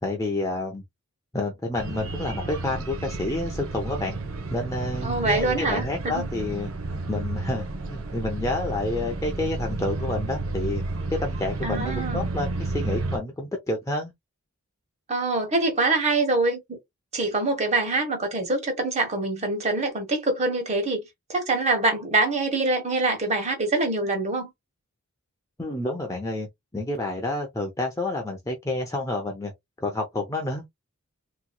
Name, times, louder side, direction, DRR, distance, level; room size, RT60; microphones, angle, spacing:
voice 1, 0.0-0.8 1.3-4.2 4.5-6.7 7.1-10.8 11.1-14.1 25.6-29.5 29.8-30.6, left 2 dB, 15° left, 0.6 m, -29 dB
sound 1, 1.8-13.2, right 2 dB, 75° right, 0.8 m, -31 dB
voice 2, 5.0-6.3 11.6-12.3 15.1-16.8 17.1-21.0 21.3-24.5, right 2 dB, 30° right, 1.2 m, -25 dB
3.4 x 3.0 x 2.2 m
head